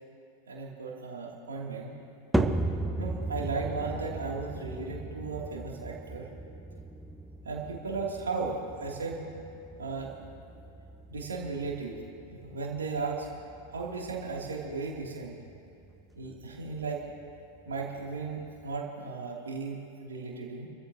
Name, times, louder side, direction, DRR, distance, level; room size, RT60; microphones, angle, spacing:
voice 1, 0.5-1.9 3.0-6.2 7.4-9.2 9.8-10.1 11.1-12.0 12.3-13.3 13.7-15.4 16.1-17.0 17.6-20.7, right 4 dB, 70° right, -2 dB, 3.1 m, -35 dB
sound 1, 2.3-18.8, right 1 dB, ahead, 0.9 m, -37 dB
29.0 x 14.0 x 3.0 m, 2.7 s
figure-of-eight pair, 90°, 0 cm